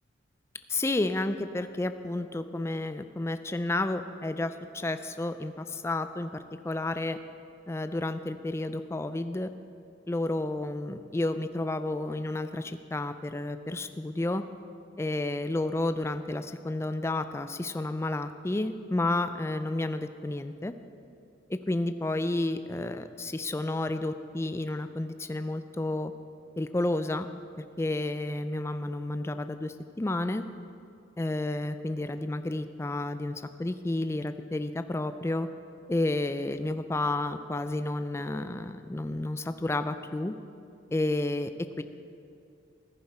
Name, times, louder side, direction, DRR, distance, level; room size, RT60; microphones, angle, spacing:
voice 1, 0.7-7.2 7.7-9.5 10.1-14.4 15.0-20.7 21.5-26.1 26.6-27.3 27.6-30.4 31.2-35.5 35.9-40.4 40.9-41.8, left 2 dB, 15° left, 10 dB, 0.4 m, -31 dB
15.0 x 10.5 x 4.3 m, 2.5 s
head